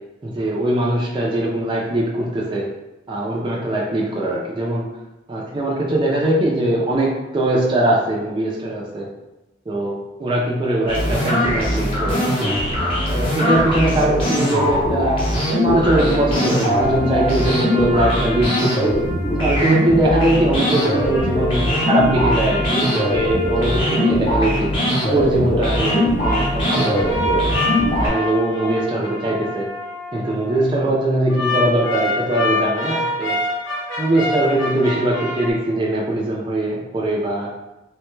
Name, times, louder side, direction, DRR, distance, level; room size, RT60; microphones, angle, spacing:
voice 1, 0.2-2.7 3.1-4.8 5.3-9.1 9.7-12.5 13.1-15.2 15.5-19.0 19.4-24.7 25.1-27.6 28.0-29.7 30.1-33.4 34.0-37.5, right 1 dB, 25° right, -4 dB, 0.4 m, -21 dB
sound 1, 10.9-28.1, equal, 30° left, 0.7 m, -20 dB
sound 2, 15.9-20.1 20.6-25.0 25.6-30.6 31.3-35.5, left 1 dB, 85° left, 0.8 m, -28 dB
3.2 x 2.2 x 3.0 m, 1.0 s
head